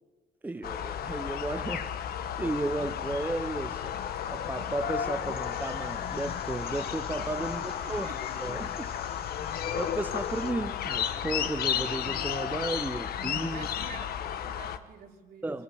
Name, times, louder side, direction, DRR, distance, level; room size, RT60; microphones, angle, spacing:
voice 1, 0.4-1.9 2.4-4.0 4.3-8.1 8.4-8.9 9.7-13.7 15.4-15.6, right 2 dB, 10° right, 0.8 m, -34 dB
sound 1, 0.6-14.8, left 9 dB, 65° left, 1.4 m, -33 dB
sound 2, 2.4-10.5, left 5 dB, 35° left, 2.2 m, -52 dB
voice 2, 7.6-8.9 13.4-15.6, right 7 dB, 65° right, 3.8 m, -49 dB
23.0 x 19.5 x 8.2 m
cardioid pair, 110°, 17 cm